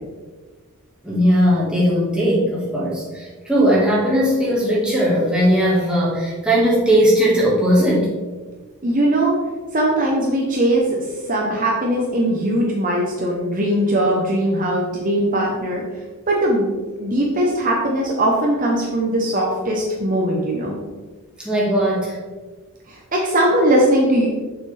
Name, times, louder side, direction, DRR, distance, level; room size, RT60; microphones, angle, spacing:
voice 1, 1.0-8.1 21.4-22.2, equal, 5° right, -7 dB, 1.7 m, -18 dB
voice 2, 8.8-9.3 9.7-16.7 17.0-20.8 22.9-24.3, right 1 dB, 35° right, -2 dB, 0.9 m, -20 dB
6.6 x 5.9 x 3.4 m, 1.3 s
head